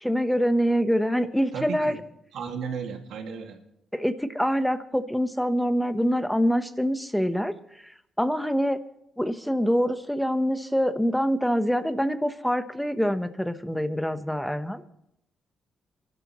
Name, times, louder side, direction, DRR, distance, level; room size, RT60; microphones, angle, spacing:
voice 1, 0.0-1.9 3.9-7.6 8.2-8.8 9.2-14.9, equal, 5° left, 10 dB, 1.0 m, -25 dB
voice 2, 1.5-2.0 2.3-3.6, right 6 dB, 85° right, 3 dB, 2.1 m, -34 dB
28.0 x 12.0 x 3.1 m, 0.78 s
cardioid pair, 110°, 0 cm